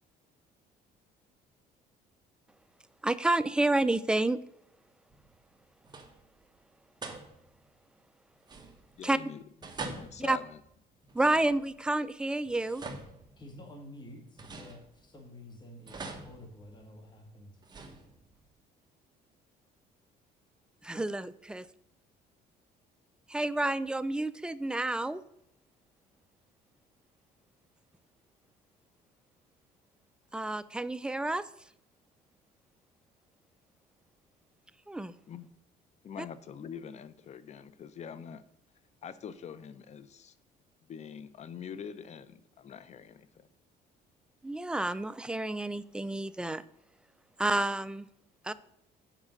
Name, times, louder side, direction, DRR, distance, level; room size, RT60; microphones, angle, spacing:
voice 1, 3.0-4.4 9.0-9.2 10.2-10.4 11.1-12.8 20.8-21.7 23.3-25.2 30.3-31.5 34.9-35.1 36.2-36.3 44.4-46.6 47.4-48.1 48.4-48.5, right 2 dB, 5° right, 0.3 m, -29 dB
sound 1, 5.1-5.6 5.8-6.4 7.0-7.7 8.4-9.1 9.6-11.9 12.5-13.8 14.4-15.3 15.9-17.1 17.6-18.5, right 3 dB, 25° right, 1.2 m, -45 dB
voice 2, 9.0-9.4 9.9-10.6 35.3-35.5 36.0-38.4 39.0-40.3 40.9-43.5, left 7 dB, 40° left, 0.6 m, -44 dB
voice 3, 13.4-17.6, left 1 dB, 25° left, 1.8 m, -50 dB
7.4 x 4.9 x 6.4 m
cardioid pair, 110°, 17 cm